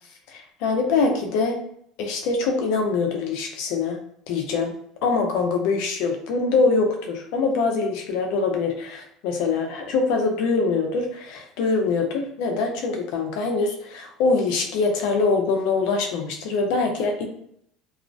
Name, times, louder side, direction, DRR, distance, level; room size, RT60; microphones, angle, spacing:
voice 1, 0.3-1.6 2.0-4.0 4.3-4.7 5.0-17.2, left 4 dB, 75° left, 2 dB, 0.5 m, -23 dB
2.4 x 2.1 x 2.5 m, 0.70 s
supercardioid pair, 110°, 0 cm